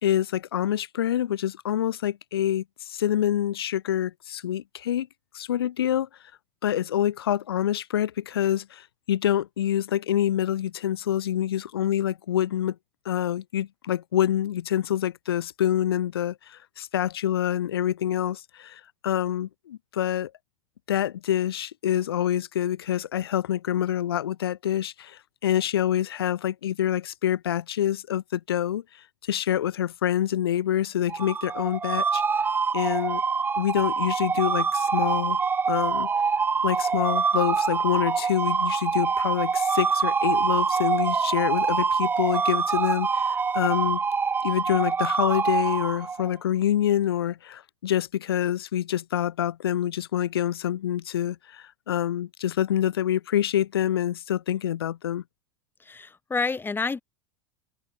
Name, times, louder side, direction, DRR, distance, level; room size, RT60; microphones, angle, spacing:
voice 1, 0.0-5.1 5.3-6.1 6.6-12.8 13.0-20.3 20.9-28.8 29.2-32.2 32.7-33.2 33.6-35.4 35.7-36.1 36.6-44.0 44.4-55.2, left 11 dB, 70° left, 4.4 m, -26 dB
sound 1, 31.1-46.4, right 5 dB, 15° right, 0.5 m, -25 dB
voice 2, 55.8-57.0, left 4 dB, 15° left, 7.0 m, -29 dB
figure-of-eight pair, 85°, 13 cm